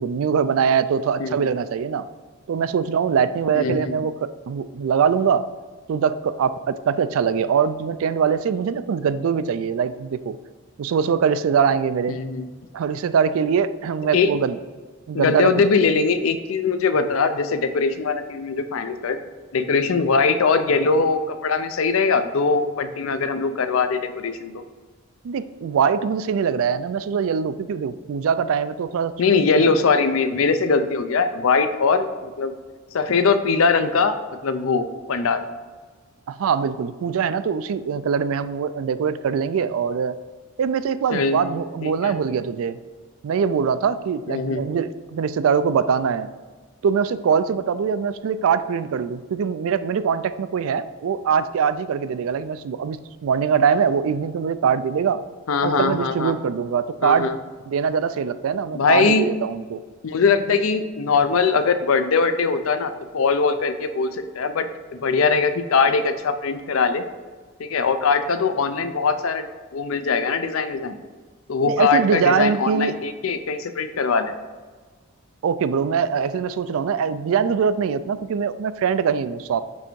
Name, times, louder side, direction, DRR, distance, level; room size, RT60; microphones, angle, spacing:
voice 1, 0.0-2.1 2.5-5.4 5.9-10.4 10.8-12.2 12.7-14.6 15.1-15.7 25.2-29.1 29.6-29.7 36.3-40.2 40.6-42.8 43.2-46.3 46.8-55.2 55.6-57.3 57.7-59.8 71.7-72.9 75.4-79.6, right 6 dB, 75° right, 14 dB, 0.3 m, -22 dB
voice 2, 3.5-4.0 12.1-12.5 14.1-14.3 15.1-19.2 19.5-24.6 29.2-32.5 32.9-34.2 34.4-35.4 41.1-41.4 41.8-42.1 44.3-44.7 55.5-56.3 57.0-57.4 58.7-59.3 60.0-67.0 67.6-69.5 69.7-71.0 71.5-74.3, left 4 dB, 75° left, 10 dB, 0.5 m, -21 dB
6.2 x 3.4 x 4.6 m, 1.4 s
head